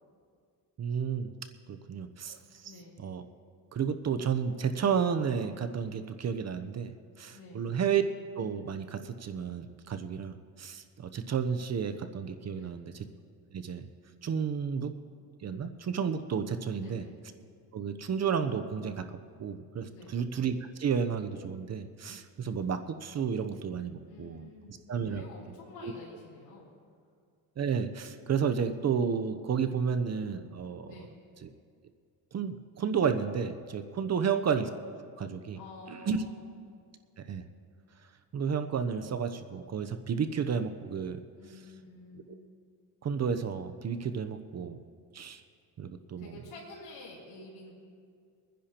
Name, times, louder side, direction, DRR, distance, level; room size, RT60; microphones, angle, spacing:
voice 1, 0.8-1.3 1.7-3.2 3.7-6.9 7.2-8.0 8.4-13.0 13.5-13.9 14.2-14.9 15.4-17.0 17.7-24.5 24.9-25.3 25.8-25.9 27.6-30.9 31.4-31.5 32.3-35.6 35.9-36.2 37.2-37.4 38.3-41.2 41.5-41.6 42.3-42.4 43.0-44.8 45.1-45.4 45.8-46.4, right 7 dB, 40° right, 9 dB, 0.7 m, -32 dB
voice 2, 2.6-3.0 7.3-7.7 12.5-12.8 16.8-17.2 19.9-20.3 24.1-26.7 30.9-31.2 34.1-34.3 35.5-36.5 41.4-42.5 46.2-47.7, left 3 dB, 65° left, -7 dB, 4.1 m, -49 dB
25.0 x 10.5 x 2.9 m, 2.2 s
cardioid pair, 95°, 42 cm